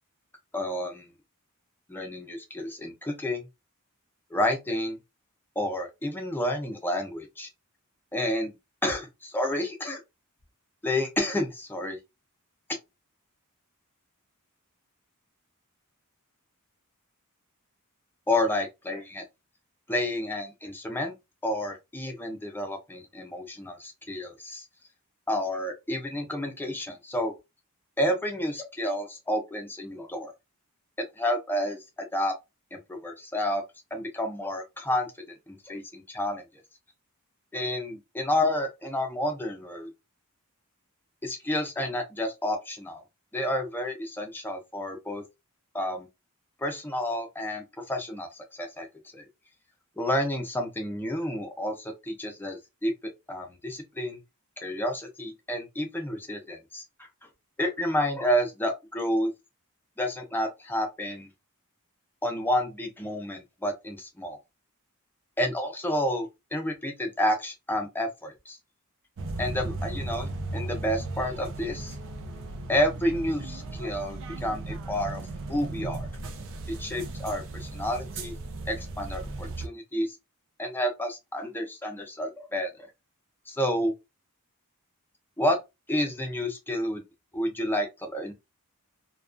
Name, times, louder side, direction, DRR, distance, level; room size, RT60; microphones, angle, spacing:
voice 1, 0.5-1.1 1.9-3.4 4.3-5.0 5.6-7.5 8.1-8.5 8.8-10.0 10.8-12.0 18.3-19.2 19.9-21.1 21.4-24.6 25.3-27.3 28.0-30.3 31.2-32.3 32.7-33.6 33.9-36.4 37.5-39.9 41.2-43.0 43.3-45.2 45.7-46.1 46.6-48.9 49.1-49.2 50.0-52.9 53.3-54.2 54.6-56.8 57.6-59.3 60.0-61.3 62.2-64.4 65.4-68.6 69.4-71.9 72.7-75.2 75.5-76.1 76.7-78.3 78.7-80.1 80.6-82.7 83.5-83.9 85.4-85.6 85.9-87.0 87.3-88.3, left 1 dB, 10° left, 0.5 m, -30 dB
sound 1, 69.2-79.7, right 2 dB, 60° right, 0.5 m, -36 dB
2.3 x 2.2 x 2.4 m
head